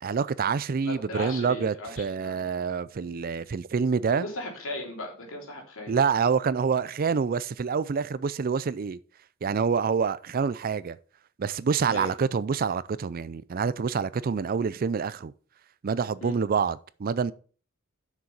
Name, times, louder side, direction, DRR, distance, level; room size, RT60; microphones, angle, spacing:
voice 1, 0.0-4.3 5.9-9.0 9.4-11.0 11.4-15.3 15.8-17.3, right 5 dB, 45° right, 0.4 m, -27 dB
voice 2, 0.8-2.4 4.1-5.9 11.8-12.1 16.2-16.4, left 1 dB, 65° left, 3.0 m, -37 dB
7.2 x 6.4 x 5.5 m
head